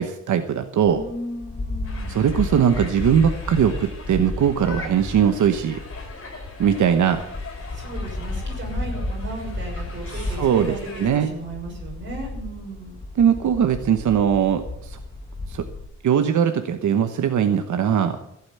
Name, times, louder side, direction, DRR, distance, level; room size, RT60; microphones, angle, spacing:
voice 1, 0.0-1.0 2.1-5.8 6.6-7.2 10.4-10.8 11.0-11.3 13.2-15.0 15.5-15.6 16.0-18.2, right 8 dB, 80° right, 7 dB, 1.1 m, -20 dB
sound 1, 0.8-15.8, left 2 dB, 25° left, 2.3 m, -33 dB
voice 2, 0.8-2.1 7.7-12.9, right 2 dB, 40° right, -1 dB, 6.5 m, -35 dB
sound 2, 1.8-11.2, left 3 dB, 45° left, 4.8 m, -41 dB
15.5 x 8.9 x 8.1 m, 0.79 s
wide cardioid pair, 170°, 30 cm